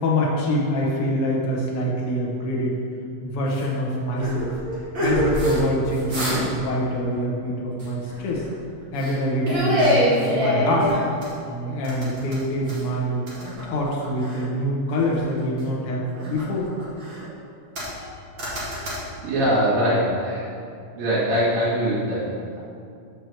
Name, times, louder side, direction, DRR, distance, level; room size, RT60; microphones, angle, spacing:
voice 1, 0.0-2.8 3.2-4.5 5.0-8.4 8.9-10.9 11.5-13.2 13.6-16.7, equal, 60° left, -3 dB, 1.5 m, -25 dB
sound 1, 3.5-3.7 4.2-5.6 5.9-6.6 6.9-7.1 7.8-8.5 9.0-9.2 9.4-11.4 11.8-12.9 13.3-14.5 14.9-15.7 16.1-17.2 17.7-18.1 18.4-19.0, equal, 40° right, 2.4 m, -25 dB
voice 2, 19.2-20.5 21.0-22.6, equal, 75° right, -10 dB, 3.6 m, -22 dB
6.1 x 6.1 x 6.8 m, 2.4 s
omnidirectional pair, 4.0 m